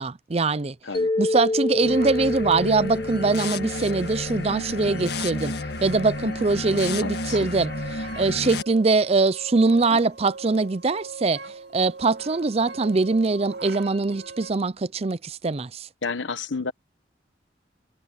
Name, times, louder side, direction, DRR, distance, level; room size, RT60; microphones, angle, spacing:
voice 1, 0.0-0.8 1.2-5.5 5.8-15.9, right 3 dB, 30° right, 0.5 m, -23 dB
Mallet percussion, 0.9-5.1, left 2 dB, 25° left, 1.4 m, -29 dB
sound 1, 1.8-8.6, left 2 dB, 60° left, 1.6 m, -32 dB
sound 2, 1.9-14.5, right 4 dB, 60° right, 7.2 m, -42 dB
voice 2, 7.0-7.4 9.9-10.0 16.0-16.7, left 4 dB, 80° left, 1.2 m, -31 dB
head